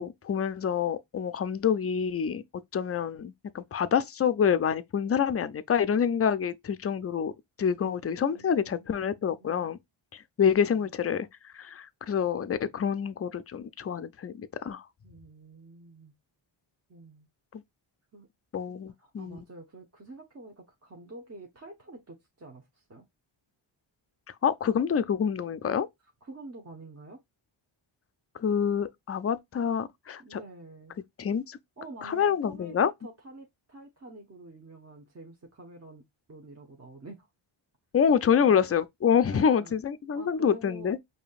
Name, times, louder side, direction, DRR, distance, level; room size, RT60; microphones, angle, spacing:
voice 1, 0.0-2.4 2.7-7.3 7.6-9.8 10.1-14.8 17.5-17.6 18.5-19.4 24.4-25.9 28.4-30.4 31.2-31.6 32.0-32.9 37.9-41.0, left 7 dB, 30° left, 0.4 m, -27 dB
voice 2, 7.8-9.7 10.6-10.9 15.0-16.1 16.9-17.3 18.1-18.3 19.0-23.1 26.2-27.2 30.2-31.0 31.8-36.0 36.3-37.3 38.3-38.6 39.3-39.8 40.1-40.9, right 2 dB, 30° right, 0.9 m, -48 dB
5.0 x 2.8 x 2.3 m
cardioid pair, 80°, 49 cm